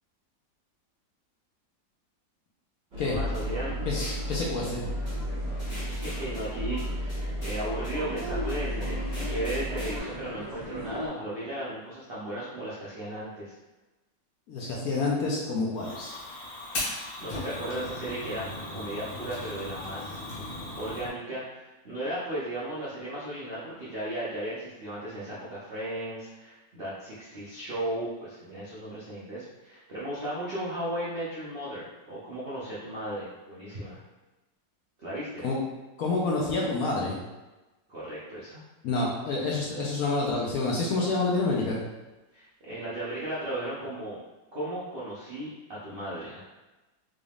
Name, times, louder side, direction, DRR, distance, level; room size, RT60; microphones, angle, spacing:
sound 1, 2.9-11.1, left 1 dB, 45° right, 1.5 m, -38 dB
sound 2, 3.1-10.0, equal, 15° left, 0.7 m, -34 dB
voice 1, 3.1-3.7 5.8-13.5 16.7-20.3 20.7-34.0 35.0-35.4 37.9-38.6 42.3-44.2 44.5-46.4, right 1 dB, 80° right, -8 dB, 0.5 m, -36 dB
voice 2, 3.9-4.8 14.5-16.1 35.4-35.6 36.0-37.1 38.8-41.8, left 3 dB, 70° left, -4 dB, 0.9 m, -28 dB
Fire, 15.8-21.1, left 1 dB, 90° left, 1.8 m, -37 dB
3.8 x 3.4 x 2.3 m, 1.1 s
omnidirectional pair, 2.0 m